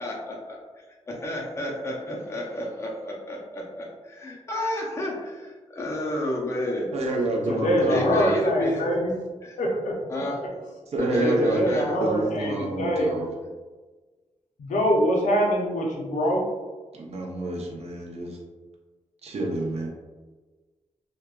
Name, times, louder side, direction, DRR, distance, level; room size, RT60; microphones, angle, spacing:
voice 1, 0.0-0.6 1.1-6.9 7.9-8.8 9.4-9.6 10.1-10.4 11.0-12.0, left 1 dB, 20° left, -2 dB, 0.4 m, -31 dB
voice 2, 6.9-8.3 10.9-11.6 12.0-13.3 16.9-18.4 19.2-19.9, right 1 dB, 55° right, -1 dB, 0.5 m, -28 dB
voice 3, 7.5-9.1 9.6-10.0 11.2-13.1 14.6-16.4, equal, 80° left, -2 dB, 0.6 m, -24 dB
2.8 x 2.2 x 2.3 m, 1.3 s
wide cardioid pair, 175°, 13 cm